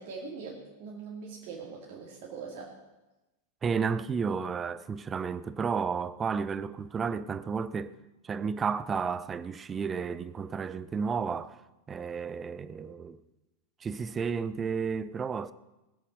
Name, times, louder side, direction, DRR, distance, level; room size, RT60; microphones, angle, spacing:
voice 1, 0.0-2.7, right 5 dB, 45° right, 2.5 m, -42 dB
voice 2, 3.6-7.9 8.2-11.6 11.9-13.2 13.8-15.5, right 6 dB, 20° right, 0.6 m, -32 dB
19.5 x 8.3 x 5.5 m
figure-of-eight pair, 90°, 0 cm